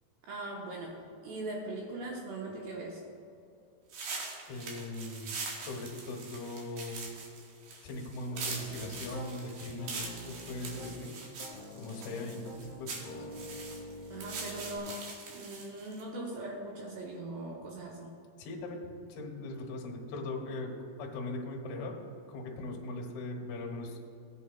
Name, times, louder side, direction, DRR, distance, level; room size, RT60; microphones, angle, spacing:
voice 1, 0.2-1.0 1.2-3.0 14.1-18.2, right 2 dB, 85° right, -2 dB, 2.3 m, -40 dB
sound 1, 3.9-16.0, right 4 dB, 65° right, 3.1 m, -43 dB
voice 2, 4.5-7.1 7.8-11.1 11.8-13.3 18.4-20.7 21.0-22.0 22.3-24.0, left 2 dB, 75° left, 0 dB, 2.4 m, -40 dB
Piano, 8.3-9.3 9.8-11.0 11.4-14.8, left 2 dB, 60° left, 1.9 m, -46 dB
17.0 x 8.3 x 2.2 m, 2.6 s
omnidirectional pair, 5.9 m